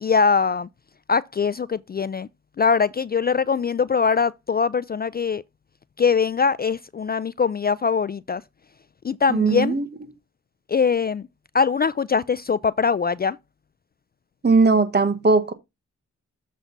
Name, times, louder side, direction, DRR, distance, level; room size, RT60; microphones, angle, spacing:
voice 1, 0.0-0.7 1.1-2.3 2.6-5.4 6.0-8.4 9.0-9.8 10.7-11.2 11.5-13.4, left 5 dB, 35° left, 0.4 m, -22 dB
voice 2, 9.3-9.9 14.4-15.5, right 4 dB, 35° right, 1.2 m, -18 dB
7.3 x 4.0 x 5.7 m
cardioid pair, 65°, 29 cm